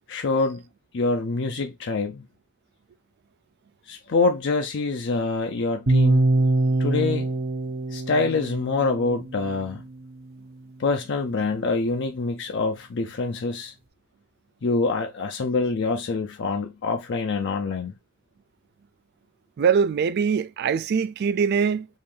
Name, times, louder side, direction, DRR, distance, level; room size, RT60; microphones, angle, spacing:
voice 1, 0.1-0.6 0.9-2.2 3.9-6.3 6.8-7.3 7.9-9.8 10.8-13.7 14.6-17.9, left 3 dB, 55° left, 0.5 m, -25 dB
sound 1, 5.9-9.9, right 2 dB, 65° right, 0.9 m, -23 dB
voice 2, 19.6-21.9, right 6 dB, 50° right, 0.3 m, -22 dB
5.4 x 2.6 x 3.3 m
head